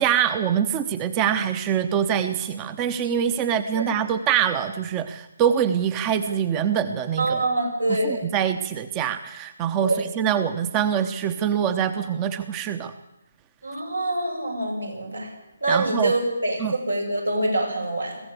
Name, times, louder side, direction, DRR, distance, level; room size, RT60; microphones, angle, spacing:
voice 1, 0.0-7.4 8.0-12.9 15.7-16.1 16.6-16.7, right 8 dB, 20° right, 11 dB, 1.0 m, -24 dB
voice 2, 7.2-8.3 9.8-10.0 13.6-15.3 15.6-18.2, right 2 dB, 80° right, 1 dB, 7.6 m, -25 dB
22.0 x 16.0 x 8.3 m, 0.96 s
figure-of-eight pair, 145°, 0 cm